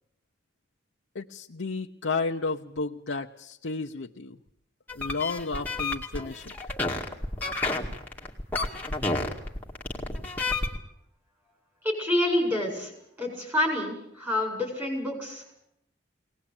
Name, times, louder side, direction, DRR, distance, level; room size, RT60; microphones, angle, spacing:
voice 1, 1.1-4.4 5.0-6.6, left 3 dB, 80° left, 1 dB, 0.8 m, -32 dB
sound 1, 4.9-10.8, left 2 dB, 10° left, 2.2 m, -30 dB
voice 2, 11.8-12.9 13.2-15.6, left 1 dB, 10° right, 1 dB, 7.7 m, -28 dB
22.5 x 19.0 x 8.8 m, 0.78 s
head